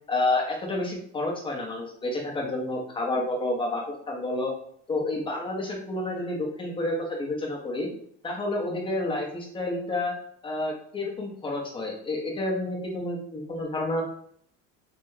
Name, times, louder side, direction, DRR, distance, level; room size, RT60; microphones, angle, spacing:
voice 1, 0.1-4.5 4.9-7.9 8.2-10.2 10.4-14.0, left 2 dB, 15° left, -1 dB, 0.9 m, -29 dB
3.4 x 2.2 x 3.2 m, 0.63 s
cardioid pair, 125°, 31 cm